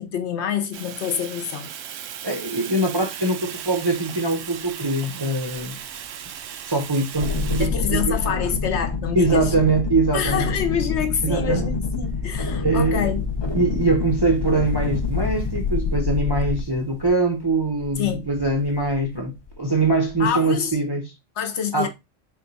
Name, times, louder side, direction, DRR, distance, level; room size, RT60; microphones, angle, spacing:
voice 1, 0.0-1.7 7.6-9.5 10.1-13.2 18.0-18.2 20.2-20.8 21.4-21.9, left 8 dB, 65° left, 1.0 m, -26 dB
Fire, 0.7-7.7, right 9 dB, 85° right, 0.9 m, -37 dB
voice 2, 2.2-5.8 6.6-8.1 9.2-10.5 11.2-11.7 12.6-13.1 13.5-21.1 21.7-21.9, right 2 dB, 30° right, 0.5 m, -23 dB
Wind, 3.6-3.7 4.1-4.2 4.4-8.0 8.3-20.4 20.7-20.8, left 4 dB, 50° left, 0.8 m, -38 dB
sound 1, 7.2-16.6, left 4 dB, 35° left, 0.4 m, -27 dB
4.2 x 2.3 x 3.9 m
omnidirectional pair, 1.3 m